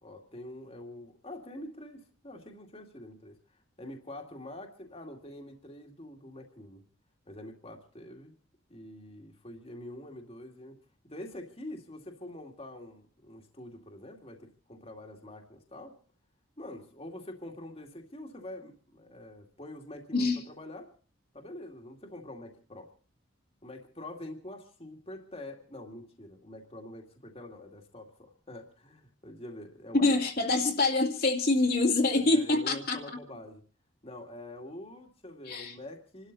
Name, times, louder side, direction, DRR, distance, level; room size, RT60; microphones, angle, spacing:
voice 1, 0.0-6.8 7.3-8.3 8.7-10.8 11.0-16.0 16.6-20.9 21.3-22.9 23.6-30.2 32.2-33.6 34.0-36.3, left 1 dB, 30° left, 2 dB, 2.2 m, -45 dB
voice 2, 29.9-33.0 35.5-35.7, left 2 dB, 50° left, 1 dB, 2.3 m, -25 dB
28.0 x 12.5 x 4.0 m, 0.41 s
head